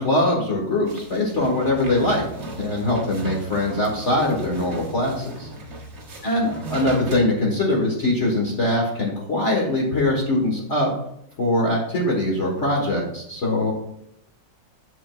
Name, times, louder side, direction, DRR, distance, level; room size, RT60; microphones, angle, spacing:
voice 1, 0.0-2.2 2.6-5.5 6.2-10.9 11.4-13.7, left 1 dB, 40° left, -2 dB, 1.4 m, -22 dB
sound 1, 0.8-7.2, right 2 dB, 40° right, 1.2 m, -37 dB
8.5 x 6.8 x 2.3 m, 0.73 s
omnidirectional pair, 2.0 m